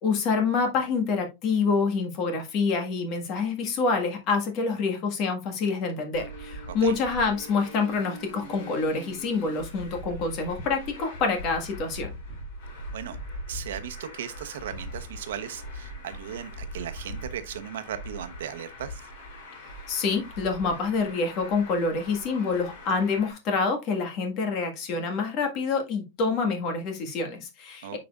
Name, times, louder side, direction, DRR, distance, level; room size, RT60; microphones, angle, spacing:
voice 1, 0.0-12.1 19.9-28.0, left 4 dB, 30° left, 1.6 m, -27 dB
Traffic noise roadway noise, 6.1-23.3, equal, 55° left, 3.1 m, -41 dB
voice 2, 13.5-19.0 27.8-28.0, right 9 dB, 85° right, 0.9 m, -37 dB
8.6 x 5.1 x 2.4 m
supercardioid pair, 175°, 0 cm